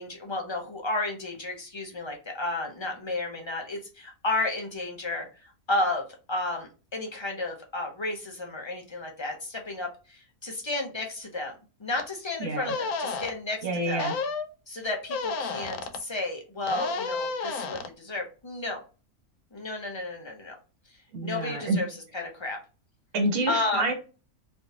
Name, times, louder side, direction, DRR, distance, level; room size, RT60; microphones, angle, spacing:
voice 1, 0.0-14.0 14.7-18.8 19.5-20.5 21.2-21.9 22.1-22.6 23.5-23.8, left 2 dB, 30° left, 1 dB, 0.5 m, -32 dB
sound 1, 12.0-12.1 12.7-13.3 14.0-14.5 15.1-16.0 16.7-17.9, left 4 dB, 80° left, 1.0 m, -31 dB
voice 2, 12.4-12.7 13.6-14.2 21.1-21.8 23.1-23.9, right 2 dB, 85° right, 2 dB, 1.6 m, -28 dB
4.0 x 2.6 x 2.8 m, 0.32 s
omnidirectional pair, 1.6 m